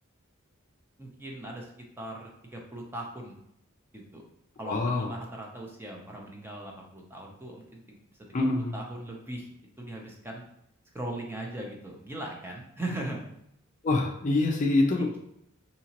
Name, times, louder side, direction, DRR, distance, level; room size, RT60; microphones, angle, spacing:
voice 1, 1.0-1.7 2.0-3.3 3.9-4.2 4.6-8.0 8.3-8.4 8.7-9.5 9.8-10.4 10.9-13.3 14.9-15.2, right 1 dB, 10° right, -1 dB, 0.6 m, -39 dB
voice 2, 4.6-5.1 8.3-8.7 13.8-15.1, left 2 dB, 35° left, 2 dB, 0.4 m, -25 dB
4.0 x 2.8 x 2.9 m, 0.76 s
head